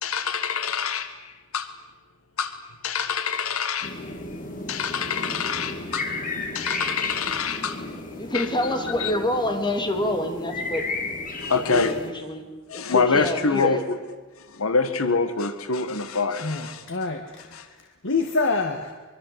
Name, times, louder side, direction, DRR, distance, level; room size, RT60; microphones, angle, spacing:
voice 1, 0.0-1.7 2.4-2.6 2.8-4.2 4.7-6.1 6.4-7.9 8.3-8.5 9.0-9.1 11.4-12.0 12.7-14.0 14.4-16.9 17.5-17.7, left 4 dB, 80° left, 10 dB, 1.6 m, -26 dB
sound 1, 3.8-12.1, left 3 dB, 40° left, 3.5 m, -34 dB
voice 2, 8.2-10.9 11.7-12.4 12.7-13.8, left 1 dB, 20° left, 5 dB, 3.0 m, -27 dB
voice 3, 16.4-17.8 18.0-18.9, left 3 dB, 65° left, 5 dB, 1.8 m, -26 dB
24.5 x 23.0 x 8.0 m, 1.3 s
head